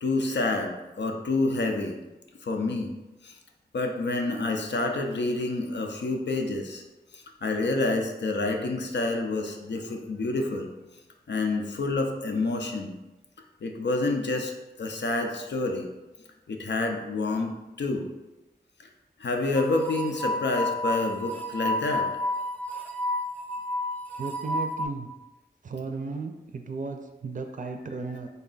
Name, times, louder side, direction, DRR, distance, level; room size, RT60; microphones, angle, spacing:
voice 1, 0.0-2.0 2.4-2.9 3.2-3.4 3.7-6.8 7.1-10.7 11.3-13.0 13.6-14.5 14.8-15.9 16.5-18.1 18.8-18.9 19.2-22.1, left 2 dB, 90° left, 3 dB, 0.5 m, -28 dB
sound 1, 19.5-24.9, left 1 dB, 10° left, 0.5 m, -31 dB
voice 2, 24.2-25.1 25.6-28.3, right 4 dB, 50° right, 5 dB, 0.4 m, -35 dB
3.9 x 2.3 x 3.8 m, 1.1 s
wide cardioid pair, 40°, 18 cm